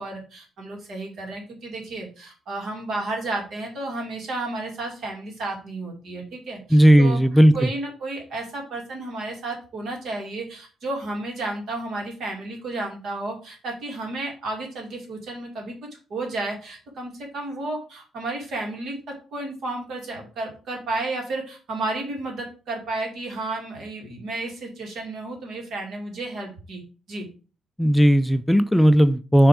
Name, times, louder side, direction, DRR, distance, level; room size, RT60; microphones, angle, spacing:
voice 1, 0.0-7.2 7.5-26.8 27.1-27.3, right 2 dB, 65° right, 1 dB, 2.4 m, -32 dB
voice 2, 6.7-7.6 27.8-29.5, equal, 5° left, 11 dB, 0.4 m, -16 dB
6.1 x 3.5 x 4.8 m, 0.36 s
cardioid pair, 90°, 0 cm